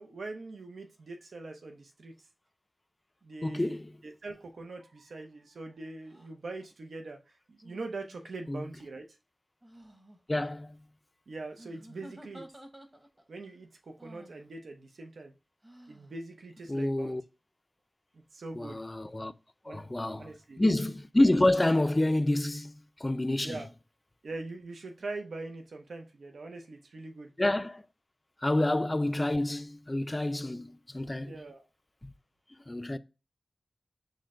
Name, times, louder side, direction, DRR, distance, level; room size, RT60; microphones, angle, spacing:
voice 1, 0.0-2.1 3.2-9.1 11.3-12.4 13.3-15.3 15.9-17.2 18.1-18.8 19.6-19.8 20.2-20.6 23.4-23.7 24.2-27.3 31.3-31.7, right 3 dB, 90° right, 0.6 m, -42 dB
voice 2, 3.4-3.9 8.5-8.7 10.3-10.8 16.7-17.2 18.6-19.3 19.7-20.3 20.6-22.7 23.0-23.6 27.4-27.8 28.4-31.3 32.0-32.1 32.7-33.0, left 1 dB, 25° left, 0.3 m, -28 dB
sound 1, 6.1-6.3 7.6-8.5 9.6-10.2 11.5-13.3 14.0-14.4 15.6-16.1, right 1 dB, 20° right, 0.8 m, -52 dB
6.4 x 2.1 x 3.6 m
wide cardioid pair, 65°, 0 cm